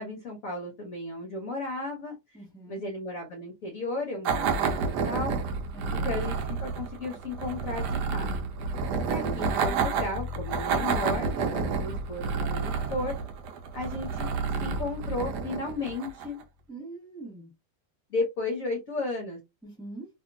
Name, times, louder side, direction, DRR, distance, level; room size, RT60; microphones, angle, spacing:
voice 1, 0.0-2.1 2.7-4.7 5.1-5.4 5.9-8.3 9.1-13.2 13.7-14.3 14.6-16.4 18.1-19.4, left 2 dB, 55° left, 1.0 m, -34 dB
voice 2, 2.3-2.8 5.7-6.1 9.2-9.4 16.7-17.5 19.6-20.1, right 2 dB, 5° left, 1.3 m, -43 dB
sound 1, 4.2-16.4, right 5 dB, 70° right, 1.0 m, -30 dB
2.9 x 2.7 x 2.5 m
omnidirectional pair, 2.1 m